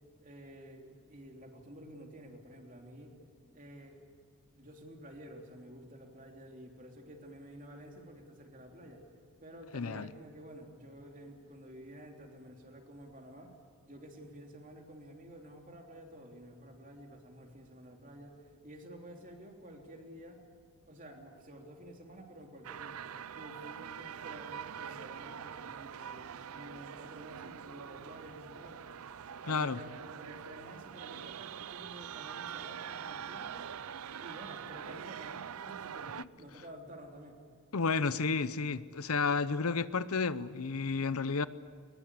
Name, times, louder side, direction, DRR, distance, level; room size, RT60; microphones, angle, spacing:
voice 1, 0.2-3.2 3.5-4.0 4.5-9.0 9.4-13.5 13.8-20.4 20.9-23.0 23.3-28.8 29.4-33.7 34.2-37.4, right 1 dB, 35° right, 3.2 m, -51 dB
voice 2, 9.7-10.1 29.5-29.8 37.7-41.5, left 4 dB, 85° left, 0.8 m, -31 dB
sound 1, 22.6-36.3, right 8 dB, 80° right, 0.5 m, -44 dB
22.0 x 21.5 x 8.4 m
head